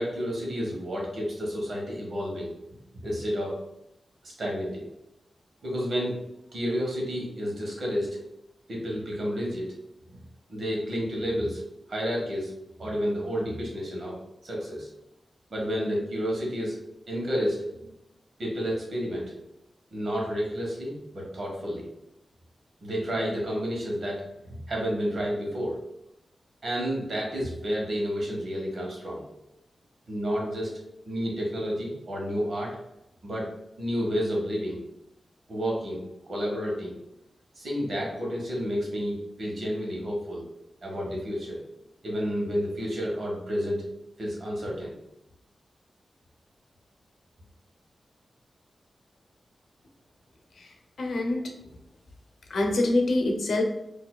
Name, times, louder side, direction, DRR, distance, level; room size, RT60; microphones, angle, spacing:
voice 1, 0.0-2.5 3.0-3.6 4.2-4.9 5.6-6.2 6.5-8.2 8.7-9.7 10.1-10.2 10.5-11.6 11.9-12.5 12.8-14.2 14.4-14.9 15.5-16.8 17.1-17.9 18.4-19.4 19.9-21.8 22.8-24.2 24.7-25.8 26.6-29.2 30.1-30.7 31.0-32.8 33.2-34.8 35.5-37.0 37.6-40.4 40.8-41.6 42.0-43.8 44.2-44.9, equal, 55° right, -2 dB, 1.2 m, -30 dB
voice 2, 51.0-51.5 52.5-53.6, left 2 dB, 90° left, 2 dB, 0.6 m, -25 dB
4.6 x 2.7 x 2.2 m, 0.86 s
wide cardioid pair, 180°, 0 cm